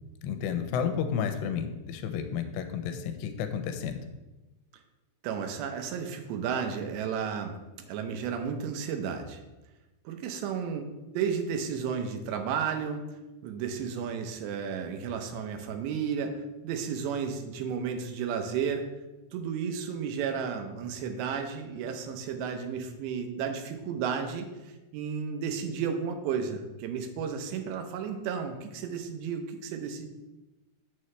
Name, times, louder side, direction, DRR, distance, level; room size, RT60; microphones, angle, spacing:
voice 1, 0.2-4.0, left 7 dB, 85° left, 7 dB, 2.8 m, -31 dB
voice 2, 5.2-7.6 7.9-9.4 10.1-10.9 11.1-13.1 13.4-16.4 16.6-18.9 19.3-24.5 24.9-30.1, right 6 dB, 85° right, 5 dB, 2.9 m, -33 dB
7.5 x 6.7 x 3.2 m, 1.1 s
omnidirectional pair, 4.9 m